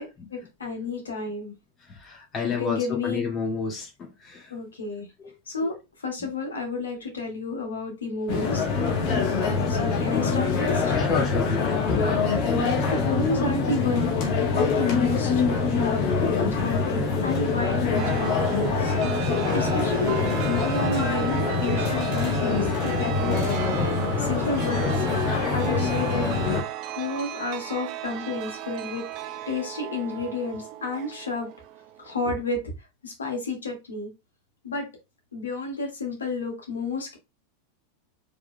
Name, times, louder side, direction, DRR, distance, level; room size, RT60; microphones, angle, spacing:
voice 1, 0.0-1.5 2.4-3.2 4.5-5.1 5.5-8.7 9.7-11.0 12.7-14.1 14.6-16.1 16.3-25.0 25.5-26.3 27.0-29.1 29.5-31.5 32.0-32.7 33.0-34.1 34.6-34.9 35.3-37.2, left 3 dB, 70° left, 1.8 m, -31 dB
voice 2, 1.8-4.5 5.2-5.4 5.6-5.7 9.1-9.2 10.9-11.8 13.0-13.1, left 5 dB, 25° left, 2.0 m, -31 dB
sound 1, 8.3-26.6, left 4 dB, 45° left, 1.2 m, -24 dB
Chime, 17.9-32.2, right 12 dB, 40° right, 0.5 m, -35 dB
4.8 x 3.6 x 2.2 m
figure-of-eight pair, 90°, 0 cm